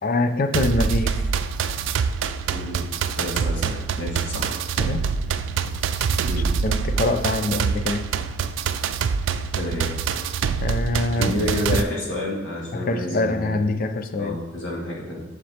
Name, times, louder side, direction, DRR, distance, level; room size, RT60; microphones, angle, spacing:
voice 1, 0.0-1.2 4.8-5.1 6.6-8.2 10.6-11.3 11.7-11.9 12.7-14.4, left 2 dB, 50° left, 9 dB, 0.5 m, -24 dB
sound 1, 0.5-11.8, right 6 dB, 75° right, 0.4 m, -25 dB
voice 2, 2.5-2.9 3.1-4.6 6.3-6.5 9.5-9.9 11.2-13.6 14.2-15.2, left 1 dB, 75° left, -3 dB, 2.0 m, -29 dB
7.5 x 6.6 x 2.9 m, 1.0 s
head